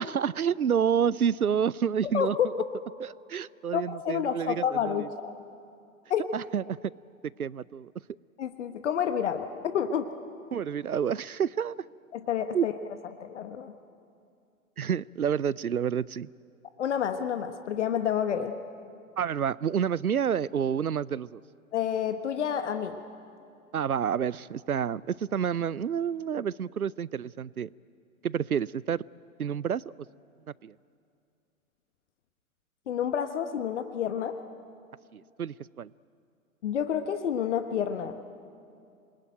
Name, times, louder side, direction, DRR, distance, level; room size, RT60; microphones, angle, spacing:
voice 1, 0.0-2.4 3.0-5.1 6.3-6.9 7.4-7.9 10.5-11.8 12.5-12.7 14.8-16.3 19.2-21.4 23.7-27.7 28.2-29.0 29.4-29.8 30.6-30.7 35.1-35.9, right 8 dB, 85° right, 24 dB, 0.6 m, -29 dB
voice 2, 3.7-5.3 6.1-6.2 8.4-10.1 12.1-12.7 13.2-13.7 16.8-18.5 21.7-23.0 32.9-34.4 36.6-38.2, left 8 dB, 55° left, 9 dB, 1.3 m, -29 dB
27.0 x 21.0 x 9.1 m, 2.5 s
figure-of-eight pair, 105°, 43 cm